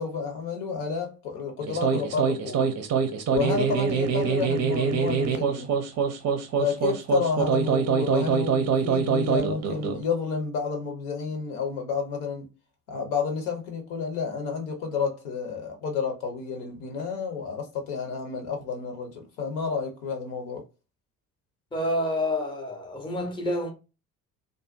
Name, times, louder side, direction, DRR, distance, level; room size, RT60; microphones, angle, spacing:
voice 1, 0.0-2.7 3.3-5.7 6.6-12.5 12.9-20.6, left 5 dB, 60° left, 1.0 m, -30 dB
sound 1, 1.6-10.0, right 6 dB, 40° right, 0.6 m, -24 dB
voice 2, 21.7-23.7, left 1 dB, 10° left, 0.8 m, -28 dB
2.5 x 2.2 x 2.5 m
figure-of-eight pair, 55°, 42 cm